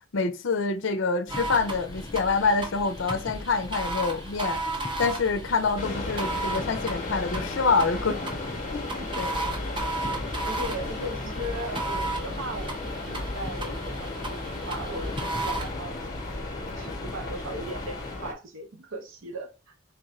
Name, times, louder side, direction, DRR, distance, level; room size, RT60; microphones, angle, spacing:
voice 1, 0.1-4.6 5.0-8.2 8.7-8.9 9.2-9.3, left 4 dB, 70° left, 0.5 m, -26 dB
sound 1, 1.3-18.2, left 2 dB, 20° left, 0.4 m, -40 dB
sound 2, 1.3-15.7, right 2 dB, 25° right, 0.7 m, -35 dB
sound 3, 5.8-18.3, left 2 dB, 35° left, 0.8 m, -35 dB
voice 2, 10.4-16.3 16.6-19.7, right 1 dB, 80° right, 0.7 m, -38 dB
3.5 x 2.5 x 4.2 m
head